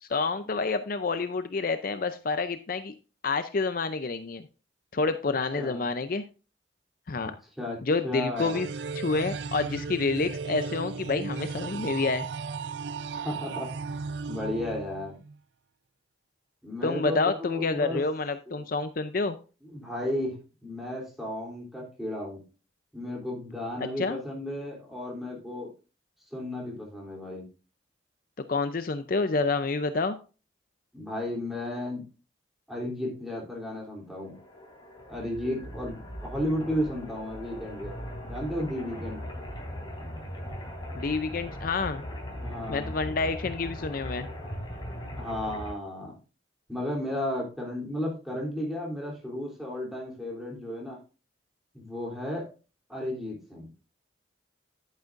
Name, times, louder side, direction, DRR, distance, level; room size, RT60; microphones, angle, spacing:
voice 1, 0.0-2.9 3.2-4.4 4.9-6.2 7.1-7.3 7.8-8.7 8.9-12.3 16.8-19.4 23.8-24.2 28.5-30.2 40.9-42.0 42.7-44.3, left 3 dB, 50° left, 11 dB, 0.5 m, -28 dB
voice 2, 8.0-8.6 13.1-15.2 16.6-18.0 18.5-18.6 19.6-22.4 22.9-25.7 26.3-27.5 30.9-32.0 32.7-34.4 35.1-37.9 38.3-39.2 42.4-42.9 45.2-46.1 46.7-51.0 51.7-52.5 52.9-53.7, left 1 dB, ahead, -3 dB, 3.2 m, -34 dB
sound 1, 8.4-15.4, right 5 dB, 60° right, 0.4 m, -36 dB
sound 2, 34.2-45.7, equal, 25° left, 3.5 m, -39 dB
10.5 x 9.0 x 2.5 m, 0.34 s
head